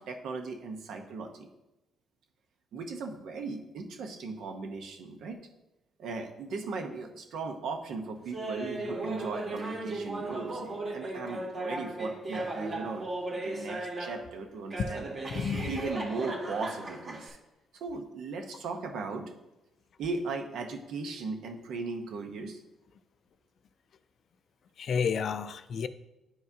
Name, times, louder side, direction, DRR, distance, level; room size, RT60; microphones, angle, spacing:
voice 1, 0.0-1.5 2.7-5.4 6.0-13.0 13.3-15.1 15.6-17.4 17.7-19.3 20.0-22.6, right 4 dB, 75° right, 4 dB, 0.9 m, -37 dB
Laughter, 8.3-14.3 14.7-17.3, right 2 dB, 45° right, 1.7 m, -36 dB
voice 2, 15.3-15.7 24.8-25.9, left 6 dB, 60° left, 12 dB, 0.4 m, -30 dB
10.0 x 4.7 x 2.7 m, 0.96 s
cardioid pair, 90°, 0 cm